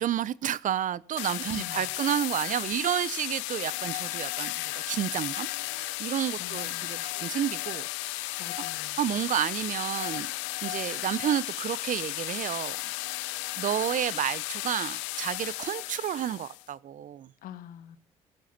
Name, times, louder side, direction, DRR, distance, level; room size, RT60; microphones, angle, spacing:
voice 1, 0.0-5.5 5.7-8.4 9.0-10.3 10.6-12.8 13.1-13.3 13.6-17.3, right 10 dB, 60° right, 0.8 m, -31 dB
sound 1, 1.2-16.6, left 21 dB, 90° left, 0.7 m, -34 dB
voice 2, 6.4-7.0 8.4-9.0 17.4-18.0, left 10 dB, 75° left, 1.5 m, -45 dB
16.0 x 13.5 x 5.9 m
hypercardioid pair, 55°, 15 cm